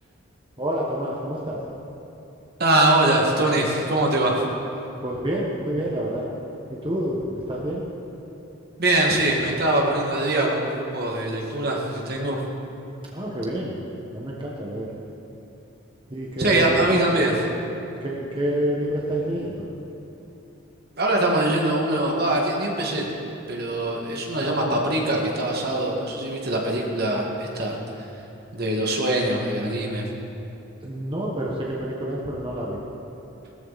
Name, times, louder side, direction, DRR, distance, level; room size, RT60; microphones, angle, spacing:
voice 1, 0.6-1.6 5.0-6.3 6.7-7.8 13.1-13.8 14.1-14.9 16.1-16.8 18.0-19.7 30.8-32.8, right 1 dB, 25° right, -4 dB, 1.4 m, -28 dB
voice 2, 2.6-4.4 8.8-12.4 16.4-17.4 21.0-23.1 23.5-27.8 28.5-30.0, right 1 dB, 50° right, -1 dB, 1.9 m, -22 dB
18.0 x 13.5 x 4.2 m, 2.9 s
head